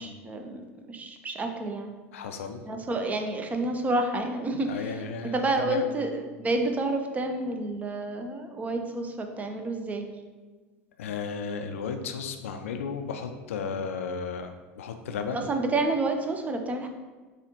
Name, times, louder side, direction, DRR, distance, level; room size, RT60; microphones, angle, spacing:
voice 1, 0.0-1.9 2.6-5.0 5.3-10.1 15.3-16.9, right 2 dB, 20° right, 5 dB, 0.6 m, -29 dB
voice 2, 2.1-2.6 4.7-5.8 11.0-15.4, left 5 dB, 70° left, 7 dB, 0.4 m, -34 dB
6.7 x 2.4 x 2.9 m, 1.3 s
figure-of-eight pair, 80°, 8 cm